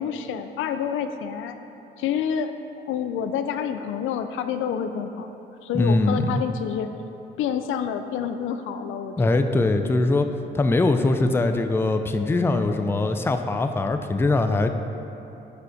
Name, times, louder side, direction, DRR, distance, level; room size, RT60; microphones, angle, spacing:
voice 1, 0.0-1.6 2.0-2.5 2.9-5.3 5.6-6.9 7.4-9.5, left 8 dB, 80° left, 9 dB, 0.4 m, -28 dB
voice 2, 5.7-6.4 9.2-10.3 10.5-14.7, left 2 dB, 10° left, 7 dB, 0.4 m, -22 dB
6.3 x 5.3 x 5.1 m, 3.0 s
cardioid pair, 90°, 20 cm